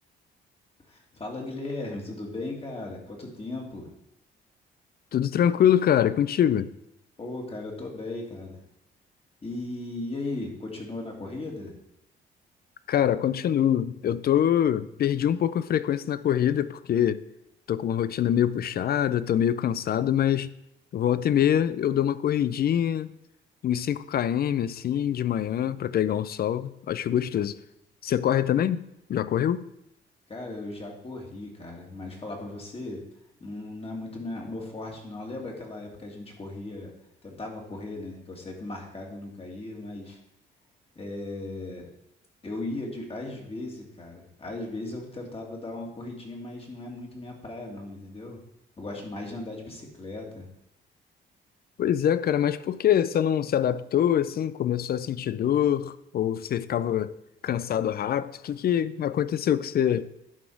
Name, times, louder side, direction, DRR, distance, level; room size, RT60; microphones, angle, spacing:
voice 1, 0.9-3.9 7.2-8.6 9.4-11.8 30.3-33.0 33.4-36.9 37.2-40.2 41.0-41.9 42.4-48.4 48.8-50.5, left 2 dB, 30° left, 2.2 m, -37 dB
voice 2, 5.1-6.7 12.9-17.2 17.7-20.5 20.9-23.1 23.6-27.6 28.0-28.8 29.1-29.7 51.8-57.1 57.4-60.1, left 10 dB, 50° left, 0.4 m, -24 dB
11.0 x 4.3 x 4.6 m
cardioid pair, 90°, 20 cm